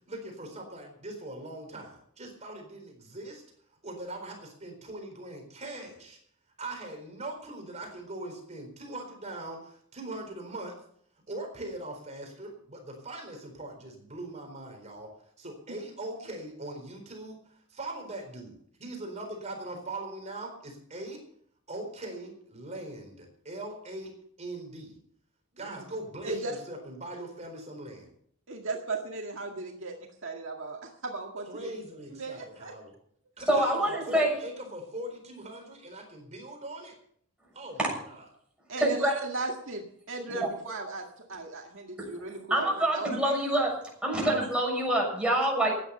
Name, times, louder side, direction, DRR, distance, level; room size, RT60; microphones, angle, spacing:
voice 1, 0.1-3.4 3.8-6.2 6.6-10.8 11.3-15.1 15.4-21.2 21.7-25.0 25.5-28.1 31.5-32.9 33.4-36.9 37.5-37.8 38.0-38.2, right 2 dB, 35° right, 3 dB, 4.2 m, -41 dB
voice 2, 26.2-26.6 28.5-31.7 32.1-32.7 33.9-34.0 38.7-43.6 44.2-44.4, right 3 dB, 65° right, 1 dB, 2.0 m, -37 dB
voice 3, 33.5-34.3 37.8-37.9 38.8-39.1 40.3-40.4 42.0-42.1 42.5-43.7 44.0-45.7, right 1 dB, 5° right, -2 dB, 6.5 m, -26 dB
15.0 x 10.0 x 6.8 m, 0.64 s
head